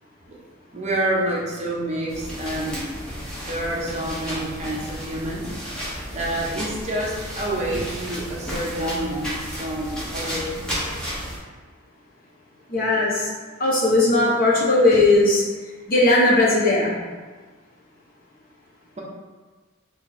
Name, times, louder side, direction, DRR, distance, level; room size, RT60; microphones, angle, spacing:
voice 1, 0.7-2.9 3.4-5.4 6.1-10.8 14.9-15.0, right 1 dB, 35° right, -4 dB, 0.6 m, -28 dB
sound 1, 2.1-11.4, equal, 5° left, 0.8 m, -33 dB
voice 2, 12.7-13.3 13.6-15.4 15.9-16.9, left 2 dB, 45° left, -6 dB, 0.9 m, -18 dB
2.9 x 2.5 x 4.0 m, 1.4 s
head